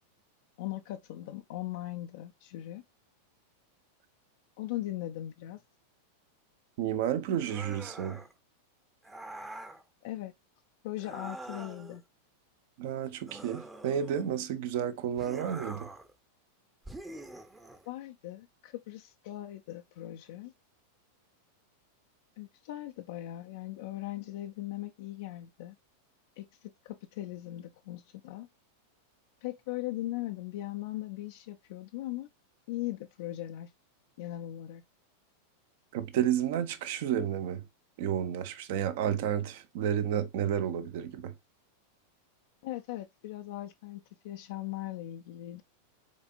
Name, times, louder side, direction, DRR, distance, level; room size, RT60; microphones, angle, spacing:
voice 1, 0.6-2.8 4.6-5.6 10.0-10.3 10.8-12.0 17.9-20.5 22.4-25.8 26.4-28.5 29.4-32.3 32.7-33.7 34.2-34.8 42.6-45.6, left 15 dB, 50° left, 0.4 m, -39 dB
voice 2, 6.8-8.2 12.8-15.9 35.9-37.7 38.0-41.3, right 9 dB, 50° right, 0.8 m, -31 dB
sound 1, 7.4-8.3 9.0-9.8 11.0-12.0 13.3-14.4 15.2-16.1 16.8-17.9, right 1 dB, 10° right, 0.8 m, -45 dB
5.1 x 4.3 x 2.4 m
figure-of-eight pair, 90°, 0 cm